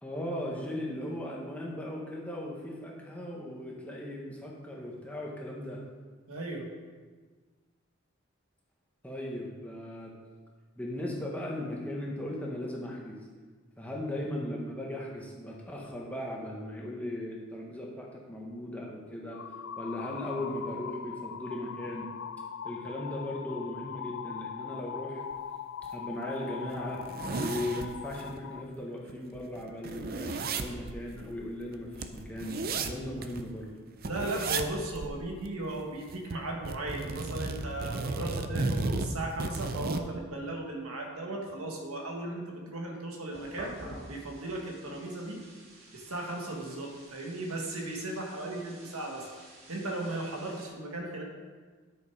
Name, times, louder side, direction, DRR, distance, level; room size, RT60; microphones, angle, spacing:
voice 1, 0.0-5.8 9.0-10.1 10.8-13.2 13.8-19.4 19.8-22.1 22.6-25.2 25.9-27.0 27.4-33.7, left 1 dB, 5° left, -3 dB, 1.3 m, -37 dB
voice 2, 6.3-6.7 34.0-43.8 44.1-45.4 45.9-49.3 49.7-51.2, right 2 dB, 80° right, 0 dB, 1.8 m, -36 dB
sound 1, 19.3-28.6, left 7 dB, 55° left, 0.3 m, -41 dB
sound 2, 25.8-25.9 26.3-26.4 26.8-28.4 28.8-28.9 29.1-33.5 34.0-34.7 35.0-35.1 35.5-36.4 36.6-40.1, right 3 dB, 45° right, 0.5 m, -34 dB
sound 3, 43.3-50.7, right 1 dB, 60° right, 2.1 m, -50 dB
10.5 x 6.6 x 4.9 m, 1.5 s
head